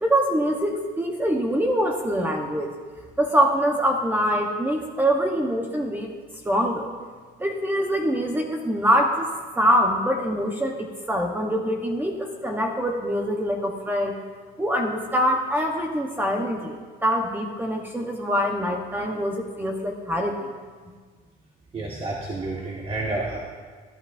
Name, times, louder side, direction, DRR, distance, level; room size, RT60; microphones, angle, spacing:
voice 1, 0.0-2.7 3.2-6.1 6.4-6.9 7.4-14.2 14.6-20.5, equal, 10° right, 1 dB, 1.0 m, -24 dB
voice 2, 21.7-23.4, right 2 dB, 35° right, -3 dB, 1.5 m, -30 dB
14.5 x 11.5 x 2.6 m, 1.5 s
cardioid pair, 110°, 17 cm